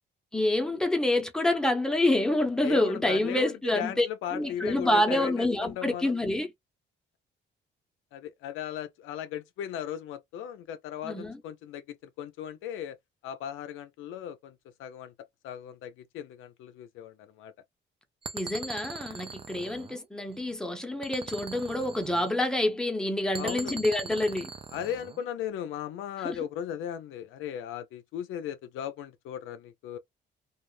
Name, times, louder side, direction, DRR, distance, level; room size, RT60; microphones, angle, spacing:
voice 1, 0.3-4.1 4.3-6.5 11.0-11.4 18.3-24.5 26.2-26.4, left 1 dB, 5° left, 0.8 m, -27 dB
voice 2, 2.6-6.1 8.1-13.0 13.2-15.1 15.4-17.5 23.4-23.8 24.7-30.0, left 10 dB, 90° left, 0.5 m, -37 dB
sound 1, 18.2-20.5 21.0-22.6 23.3-25.3, right 4 dB, 25° right, 0.4 m, -41 dB
2.3 x 2.0 x 3.1 m
cardioid pair, 90°, 20 cm